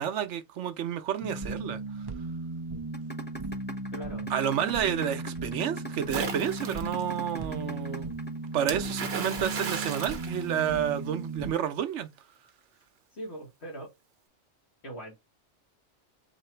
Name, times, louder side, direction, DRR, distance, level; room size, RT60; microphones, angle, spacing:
voice 1, 0.0-1.8 4.3-8.1 8.5-12.1, right 9 dB, 90° right, 1.0 m, -30 dB
sound 1, 1.2-11.5, right 2 dB, 25° right, 0.5 m, -36 dB
sound 2, 2.9-8.9, right 2 dB, 10° left, 0.9 m, -40 dB
voice 2, 3.9-4.3 13.1-13.9 14.8-15.2, right 1 dB, 70° left, 2.1 m, -40 dB
Splash splatter, 6.1-7.0 8.7-11.1, right 5 dB, 65° right, 1.1 m, -35 dB
4.0 x 2.9 x 4.4 m
omnidirectional pair, 1.2 m